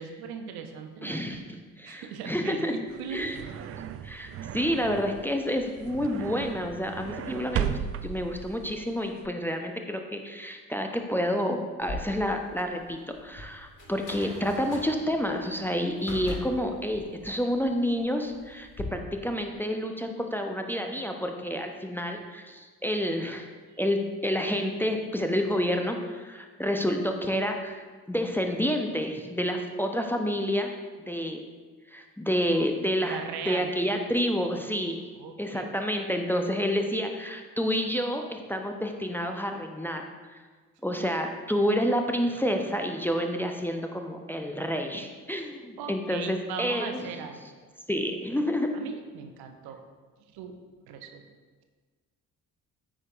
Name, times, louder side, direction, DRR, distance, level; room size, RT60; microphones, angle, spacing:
voice 1, 0.0-1.2 1.8-3.3 33.0-33.7 35.1-35.7 45.8-47.4 48.7-49.8 50.3-50.6 50.9-51.3, right 6 dB, 60° right, 6 dB, 0.9 m, -39 dB
voice 2, 1.0-2.7 3.1-3.4 4.0-23.5 23.8-30.7 31.0-31.4 31.9-33.2 33.5-35.0 35.4-40.4 40.8-47.1 47.9-48.7, equal, 5° left, 3 dB, 0.8 m, -29 dB
sound 1, 2.9-9.3, right 9 dB, 35° right, 0.4 m, -36 dB
sound 2, 11.8-18.8, left 2 dB, 45° left, 2.2 m, -42 dB
13.5 x 5.0 x 2.6 m, 1.4 s
figure-of-eight pair, 45°, 43 cm